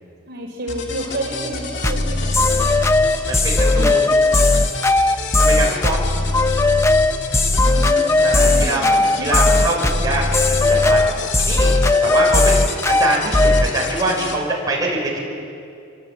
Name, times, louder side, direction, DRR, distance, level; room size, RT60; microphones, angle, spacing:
voice 1, 0.3-2.9 3.8-4.0 7.6-9.7, right 1 dB, 55° right, -1 dB, 4.4 m, -30 dB
sound 1, 0.7-14.4, left 4 dB, 60° left, 2.2 m, -31 dB
sound 2, 1.8-13.7, left 2 dB, 15° left, 0.6 m, -16 dB
voice 2, 3.3-4.0 5.4-6.1 8.2-11.0 11.4-11.7 12.0-15.2, right 2 dB, 20° right, -3 dB, 5.9 m, -24 dB
26.0 x 23.5 x 8.8 m, 2.5 s
head